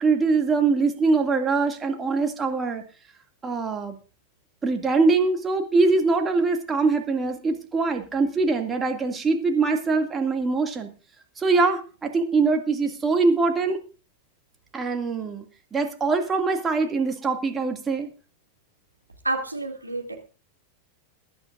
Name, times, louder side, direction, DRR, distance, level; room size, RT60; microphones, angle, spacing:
voice 1, 0.0-2.8 3.4-4.0 4.6-10.9 11.4-13.8 14.7-15.4 15.7-18.1, right 4 dB, 15° right, 4 dB, 2.3 m, -23 dB
voice 2, 19.2-20.1, right 2 dB, 85° right, 1 dB, 2.6 m, -29 dB
21.5 x 11.5 x 2.6 m, 0.33 s
figure-of-eight pair, 90°, 0 cm